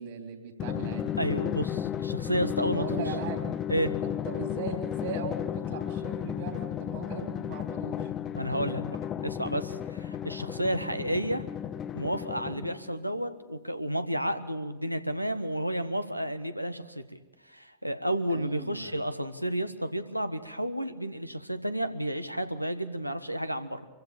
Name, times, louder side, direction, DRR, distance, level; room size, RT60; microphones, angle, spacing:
voice 1, 0.0-1.1 2.6-3.5 4.0-8.1 11.0-11.2 18.3-19.0, right 5 dB, 55° right, 5 dB, 3.5 m, -39 dB
Drum, 0.6-13.0, left 10 dB, 30° left, 0.7 m, -34 dB
voice 2, 1.2-2.8 3.7-3.9 8.3-9.0 9.2-11.4 11.9-17.0 17.5-23.9, equal, 90° right, 9 dB, 1.3 m, -31 dB
26.5 x 15.0 x 7.0 m, 1.2 s
figure-of-eight pair, 90°, 0 cm